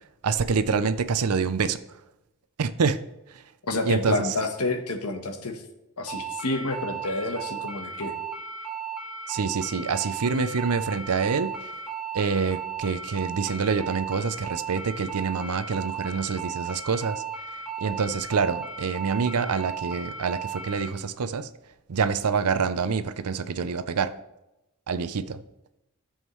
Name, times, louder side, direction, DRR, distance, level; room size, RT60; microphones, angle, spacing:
voice 1, 0.2-1.8 2.6-3.0 3.3-3.4 3.9-4.3 9.3-11.7 12.1-17.2 17.8-21.5 21.9-24.1 24.9-25.4, right 5 dB, 90° right, 12 dB, 0.6 m, -26 dB
voice 2, 3.7-5.6 6.0-8.1, left 2 dB, 85° left, 5 dB, 1.2 m, -29 dB
sound 1, 6.1-20.9, right 6 dB, 5° right, 2.3 m, -35 dB
14.0 x 7.3 x 3.2 m, 0.93 s
head